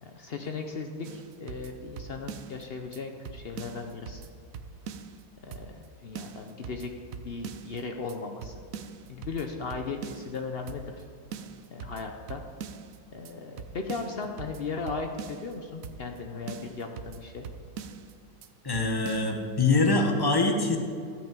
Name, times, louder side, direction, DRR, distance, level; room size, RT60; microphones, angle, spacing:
voice 1, 0.0-4.2 5.4-6.9 7.2-8.5 9.1-11.0 11.7-12.4 13.1-17.4, left 4 dB, 90° left, 4 dB, 0.5 m, -37 dB
sound 1, 1.0-2.6 2.9-3.0 3.2-5.2 5.5-5.9 6.1-7.8 8.1-8.2 8.4-10.4 10.7-11.0 11.3-13.0 13.2-13.3 13.6-15.5 15.8-16.2 16.5-18.1 18.4-18.5 18.7-19.3, right 6 dB, 75° right, 0.7 m, -42 dB
voice 2, 18.6-20.8, left 3 dB, 15° left, 3 dB, 0.8 m, -24 dB
14.0 x 6.0 x 8.9 m, 2.2 s
omnidirectional pair, 2.2 m